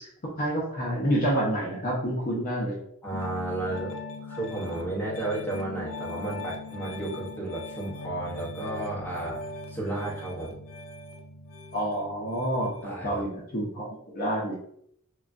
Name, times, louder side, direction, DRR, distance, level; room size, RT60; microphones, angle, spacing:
voice 1, 0.4-2.8 11.7-14.6, right 1 dB, 40° left, -4 dB, 0.7 m, -28 dB
voice 2, 3.0-3.9 4.3-9.4 9.7-10.6 12.8-13.2, right 2 dB, 10° left, -5 dB, 0.8 m, -33 dB
Piano, 3.1-12.8, left 3 dB, 80° left, 0.5 m, -40 dB
3.0 x 2.2 x 2.5 m, 0.70 s
head